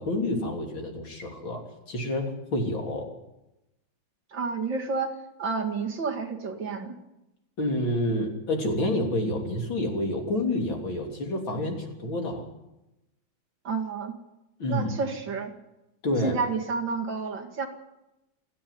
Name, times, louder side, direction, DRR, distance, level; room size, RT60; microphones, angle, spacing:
voice 1, 0.0-3.1 7.6-12.4 14.6-14.9 16.0-16.4, left 1 dB, 75° left, 1 dB, 4.1 m, -28 dB
voice 2, 4.3-7.0 13.6-14.1 14.7-15.5 16.2-17.7, right 4 dB, 70° right, 3 dB, 2.9 m, -30 dB
28.0 x 10.0 x 9.4 m, 0.95 s
omnidirectional pair, 2.1 m